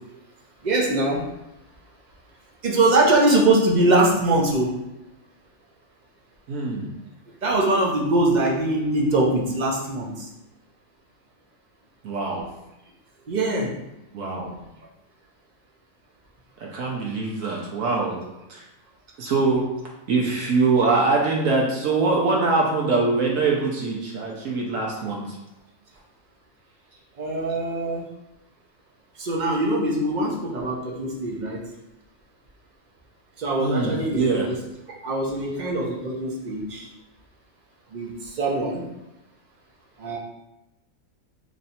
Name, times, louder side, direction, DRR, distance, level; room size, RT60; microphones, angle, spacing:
voice 1, 0.6-1.2 2.6-4.7 7.4-10.1 13.3-13.7 27.2-28.0 29.2-31.6 33.4-34.5 35.0-36.8 37.9-38.1 38.4-38.8 40.0-40.2, right 2 dB, 45° right, -2 dB, 0.6 m, -22 dB
voice 2, 6.5-6.9 12.0-12.5 14.1-14.6 16.6-18.2 18.5-18.6 19.2-19.6 20.1-25.4 33.6-34.5, right 3 dB, 70° right, -2 dB, 1.1 m, -23 dB
3.1 x 2.7 x 4.1 m, 0.93 s
omnidirectional pair, 1.5 m